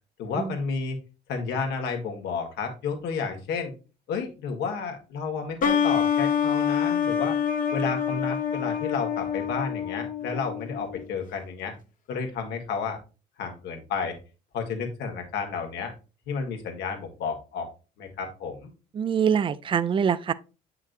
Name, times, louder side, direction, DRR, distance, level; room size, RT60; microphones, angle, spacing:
voice 1, 0.2-1.0 1.3-3.7 4.1-7.4 7.7-11.7 12.1-13.0 13.4-14.2 14.5-15.9 16.3-17.7 18.0-18.7, left 5 dB, 80° left, 1.8 m, -31 dB
sound 1, 5.6-11.1, left 8 dB, 55° left, 1.0 m, -26 dB
voice 2, 18.9-20.3, right 7 dB, 30° right, 0.4 m, -24 dB
7.9 x 5.8 x 2.6 m
cardioid pair, 110°, 17 cm